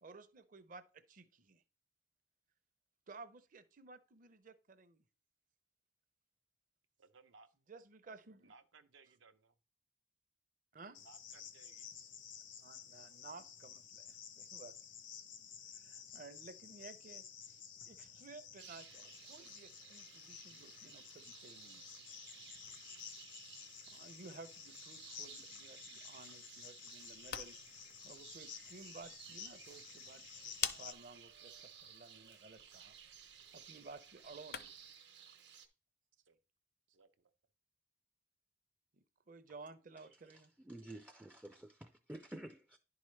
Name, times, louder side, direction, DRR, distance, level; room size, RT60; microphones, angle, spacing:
voice 1, 0.0-1.6 3.1-5.0 7.7-8.5 10.7-11.0 12.6-14.7 15.7-21.8 23.9-34.7 38.9-40.5, right 3 dB, 45° right, 0.6 m, -56 dB
voice 2, 7.0-7.5 8.4-9.6 11.0-11.9 36.1-36.4 36.9-37.3, right 4 dB, 85° right, 0.7 m, -63 dB
Cricket, 10.9-30.9, left 8 dB, 75° left, 0.9 m, -53 dB
sound 1, 18.6-35.7, right 8 dB, 60° right, 1.0 m, -57 dB
sound 2, 27.0-35.0, left 9 dB, 55° left, 0.5 m, -49 dB
voice 3, 40.3-42.8, right 1 dB, 5° right, 0.3 m, -51 dB
10.5 x 4.7 x 3.2 m
head